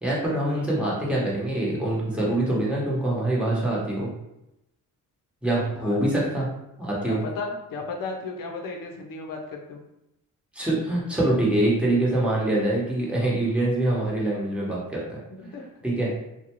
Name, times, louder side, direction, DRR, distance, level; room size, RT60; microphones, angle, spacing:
voice 1, 0.0-4.1 5.4-6.5 6.8-7.2 10.5-15.2 15.8-16.1, right 1 dB, 5° right, -6 dB, 1.0 m, -24 dB
voice 2, 5.6-6.0 7.0-9.8 15.4-15.6, left 3 dB, 70° left, 2 dB, 0.6 m, -35 dB
2.4 x 2.2 x 2.9 m, 0.87 s
cardioid pair, 75°, 34 cm